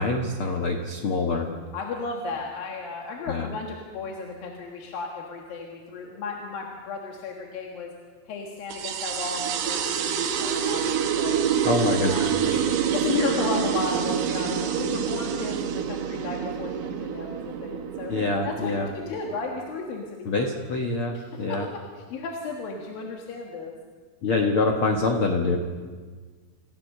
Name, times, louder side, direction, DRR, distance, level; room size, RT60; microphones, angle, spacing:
voice 1, 0.0-1.5 3.3-3.5 11.6-12.3 18.1-18.9 20.2-21.7 24.2-25.6, left 3 dB, 90° left, 3 dB, 1.1 m, -25 dB
voice 2, 1.7-7.9 8.3-11.3 11.9-18.1 18.4-20.6 21.1-21.6 22.0-23.7, left 4 dB, 65° left, 0 dB, 3.3 m, -34 dB
sound 1, 8.7-19.7, right 8 dB, 85° right, 3.5 m, -27 dB
27.5 x 15.0 x 6.7 m, 1.5 s
omnidirectional pair, 4.6 m